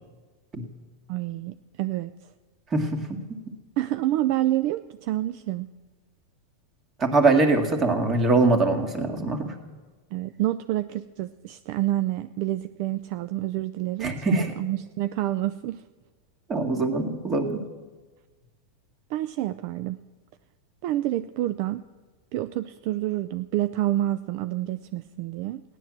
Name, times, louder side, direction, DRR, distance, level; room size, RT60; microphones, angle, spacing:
voice 1, 1.1-2.1 3.8-5.7 10.1-15.8 19.1-20.0 20.8-21.8 22.3-25.6, right 14 dB, 55° right, 12 dB, 0.4 m, -28 dB
voice 2, 2.7-3.4 7.0-9.6 14.0-14.5 16.5-17.7, right 3 dB, 25° right, 4 dB, 2.1 m, -23 dB
16.0 x 11.0 x 7.5 m, 1.3 s
hypercardioid pair, 125°, 0 cm